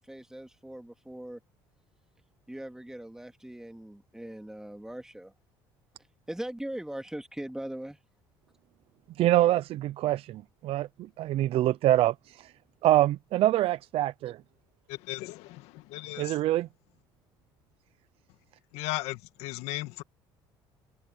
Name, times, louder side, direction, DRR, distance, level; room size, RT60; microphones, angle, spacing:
voice 1, 0.0-1.4 2.5-5.3 6.3-8.0, right 1 dB, 5° right, 2.4 m, -40 dB
voice 2, 9.2-12.5 12.8-14.4 16.2-16.7, right 14 dB, 65° right, 0.7 m, -25 dB
voice 3, 14.9-16.4 18.7-20.0, left 18 dB, 80° left, 2.1 m, -36 dB
supercardioid pair, 80°, 11 cm